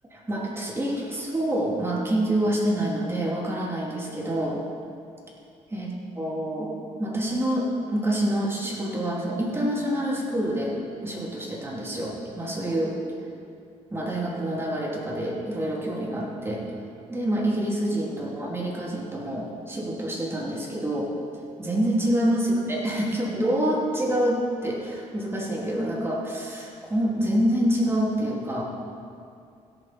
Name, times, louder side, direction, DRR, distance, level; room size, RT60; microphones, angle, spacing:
voice 1, 0.1-4.6 5.7-6.7 7.0-10.8 11.0-13.0 13.9-16.6 17.1-21.1 21.6-28.6, right 1 dB, 20° right, -4 dB, 3.0 m, -27 dB
16.5 x 7.3 x 4.4 m, 2.4 s
cardioid pair, 85°, 13 cm